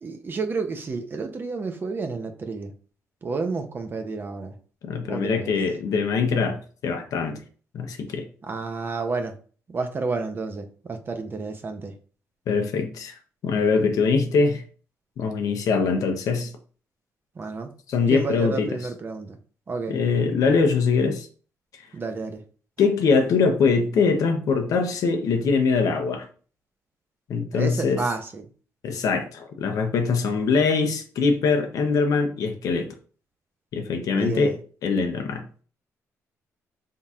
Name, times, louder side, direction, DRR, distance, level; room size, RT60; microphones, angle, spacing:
voice 1, 0.0-2.7 3.2-4.5 5.1-5.5 8.5-9.3 9.7-11.9 17.4-17.7 18.1-19.4 19.7-20.0 21.9-22.4 27.5-28.4 34.2-34.6, right 4 dB, 35° right, 0.7 m, -30 dB
voice 2, 4.8-7.4 7.7-8.3 12.5-13.1 13.4-14.6 15.2-16.5 17.9-18.8 19.9-21.3 22.8-26.3 27.3-28.0 28.8-32.9 33.7-34.6 34.8-35.4, left 4 dB, 75° left, 0.7 m, -23 dB
4.1 x 3.7 x 2.4 m
cardioid pair, 95°, 6 cm